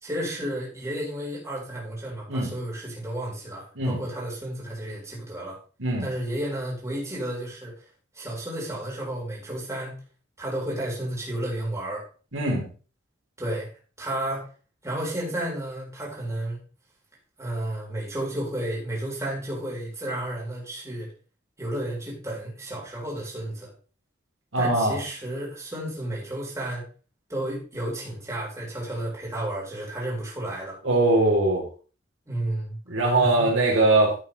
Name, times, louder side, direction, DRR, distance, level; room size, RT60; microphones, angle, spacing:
voice 1, 0.0-5.6 6.0-7.9 8.1-9.9 10.4-12.0 13.4-13.7 14.0-14.5 14.8-16.6 17.4-21.1 21.6-23.7 24.6-26.8 27.3-30.8 32.3-33.8, right 1 dB, 15° right, -4 dB, 4.5 m, -32 dB
voice 2, 12.3-12.7 24.5-25.0 30.8-31.6 32.9-34.1, right 2 dB, 75° right, -1 dB, 3.7 m, -21 dB
12.0 x 8.5 x 3.4 m, 0.37 s
head